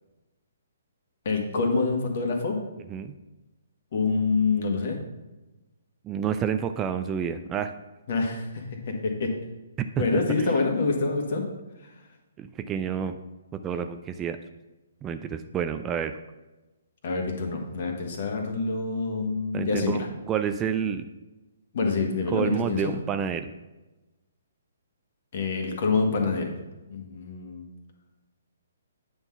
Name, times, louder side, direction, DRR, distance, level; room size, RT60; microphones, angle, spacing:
voice 1, 1.2-2.6 3.9-5.0 8.1-9.3 10.0-11.5 17.0-20.0 21.7-22.9 25.3-26.5 26.9-27.6, left 4 dB, 50° left, 3 dB, 1.5 m, -26 dB
voice 2, 6.0-7.7 9.8-10.5 12.4-13.2 13.5-14.4 15.0-16.2 19.5-20.0 20.3-21.1 22.3-23.5, right 8 dB, 20° right, 8 dB, 0.4 m, -29 dB
8.8 x 3.9 x 5.8 m, 1.1 s
figure-of-eight pair, 130°, 0 cm